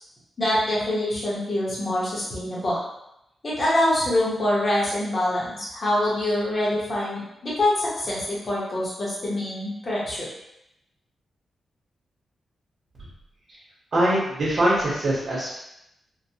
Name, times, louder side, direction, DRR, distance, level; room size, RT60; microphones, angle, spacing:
voice 1, 0.4-2.8 3.4-10.3, left 1 dB, 30° left, -7 dB, 0.8 m, -25 dB
voice 2, 13.9-15.6, right 1 dB, 45° right, -7 dB, 0.8 m, -22 dB
3.0 x 2.1 x 2.7 m, 0.83 s
wide cardioid pair, 180°, 0 cm